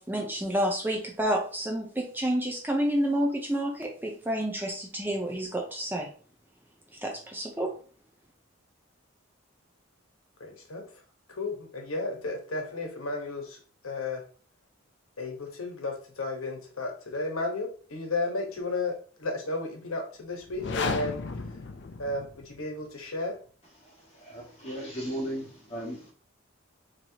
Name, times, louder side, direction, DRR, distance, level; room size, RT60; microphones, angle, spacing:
voice 1, 0.0-6.1 7.0-7.7, equal, 10° right, 1 dB, 0.6 m, -29 dB
voice 2, 10.4-10.9 11.3-14.2 15.2-21.2 22.0-23.3, left 2 dB, 90° left, 2 dB, 1.1 m, -33 dB
sound 1, 20.4-22.6, left 3 dB, 55° left, 0.4 m, -33 dB
voice 3, 24.2-26.1, equal, 30° left, -4 dB, 1.5 m, -36 dB
4.4 x 3.0 x 2.8 m, 0.41 s
head